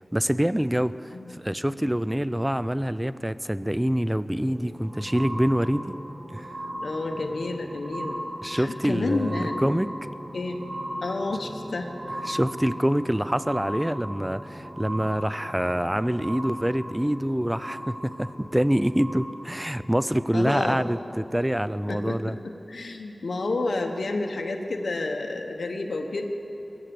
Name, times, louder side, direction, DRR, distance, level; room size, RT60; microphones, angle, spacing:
voice 1, 0.1-5.9 6.3-6.5 8.4-9.9 12.3-22.4, equal, 10° right, 15 dB, 0.5 m, -26 dB
sound 1, 4.2-21.0 21.8-21.9, equal, 70° right, 3.1 m, -38 dB
voice 2, 6.8-8.2 8.5-9.6 10.3-10.6 11.0-11.9 20.3-20.8 21.9-26.2, left 2 dB, 85° left, 3 dB, 1.0 m, -30 dB
21.5 x 8.0 x 7.7 m, 3.0 s
wide cardioid pair, 50°, 0 cm